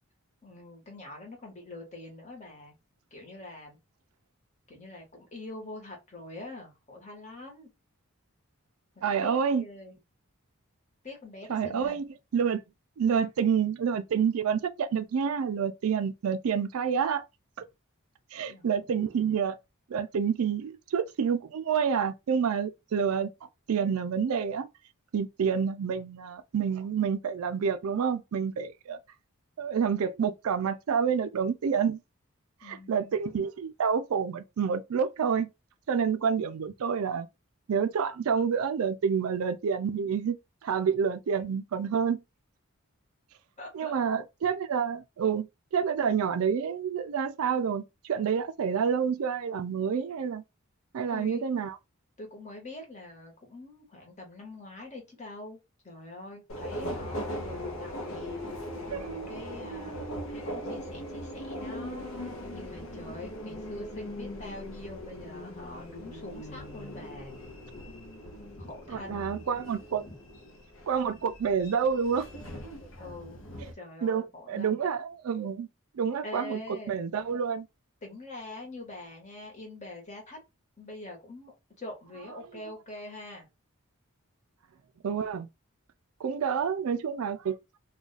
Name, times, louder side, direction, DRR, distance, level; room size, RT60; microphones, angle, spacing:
voice 1, 0.4-2.7 3.1-3.8 4.7-7.7 9.0-9.9 11.0-12.0 18.5-19.2 32.6-33.1 43.6-43.9 51.1-51.4 52.2-55.6 55.8-58.6 58.9-60.0 60.3-67.4 68.6-69.2 70.0-70.1 73.0-73.4 73.7-74.8 76.2-77.0 78.0-80.4 80.8-83.5, left 2 dB, 35° left, 1.1 m, -44 dB
voice 2, 9.0-9.6 11.5-12.6 13.0-17.3 17.6-17.7 18.3-19.6 19.9-23.3 23.7-24.7 25.1-29.0 29.6-32.0 32.6-35.5 35.9-37.3 37.7-42.2 43.7-45.5 45.7-50.4 50.9-51.8 58.9-59.0 68.9-70.0 70.9-72.3 74.0-75.7 75.9-76.6 76.9-77.7 85.0-85.5 86.2-87.6, right 7 dB, 75° right, 0.4 m, -28 dB
Subway metro underground, 56.5-73.7, equal, 65° left, 0.7 m, -40 dB
2.4 x 2.3 x 3.8 m
head